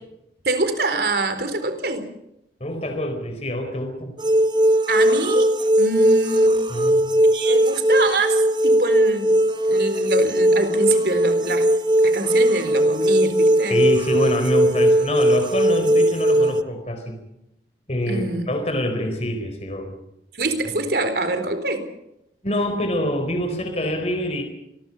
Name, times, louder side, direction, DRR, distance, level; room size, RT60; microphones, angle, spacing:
voice 1, 0.4-2.1 4.9-5.5 5.8-6.6 7.3-9.4 9.7-11.7 12.0-13.8 18.1-18.5 20.3-21.9, right 2 dB, 60° right, 9 dB, 4.1 m, -25 dB
voice 2, 2.6-4.1 6.7-7.2 13.7-17.2 17.9-20.0 22.4-24.4, left 1 dB, 35° left, 6 dB, 4.4 m, -26 dB
sound 1, 4.2-16.6, right 1 dB, 25° right, 1.0 m, -18 dB
28.5 x 21.0 x 5.5 m, 0.85 s
head